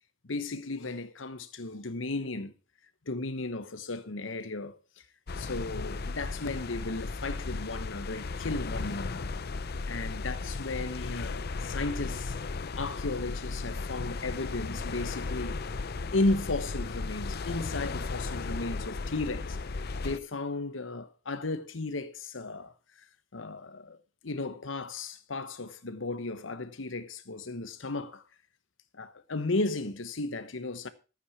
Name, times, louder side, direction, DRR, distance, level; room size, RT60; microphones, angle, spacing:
voice 1, 0.2-2.5 3.1-4.8 5.4-9.2 9.8-12.3 12.8-15.6 16.1-19.6 20.0-22.7 23.3-24.0 24.2-28.2 28.9-30.9, left 2 dB, 75° left, 1.1 m, -34 dB
sound 1, 5.3-20.2, left 3 dB, 55° left, 0.6 m, -35 dB
13.0 x 8.9 x 4.8 m
head